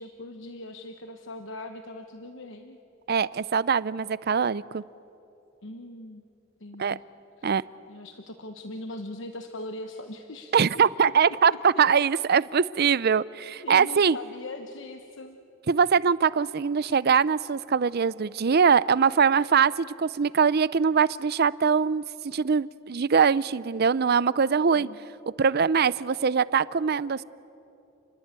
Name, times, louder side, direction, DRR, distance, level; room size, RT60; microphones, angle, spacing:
voice 1, 0.0-2.8 5.6-6.2 6.6-7.0 7.9-11.6 13.6-15.4 24.7-25.0, left 2 dB, 65° left, 6 dB, 1.2 m, -40 dB
voice 2, 3.1-4.8 6.8-7.0 7.4-7.6 10.5-14.2 15.7-24.9 25.4-27.2, right 6 dB, 50° right, 19 dB, 0.5 m, -22 dB
30.0 x 21.0 x 8.9 m, 2.9 s
head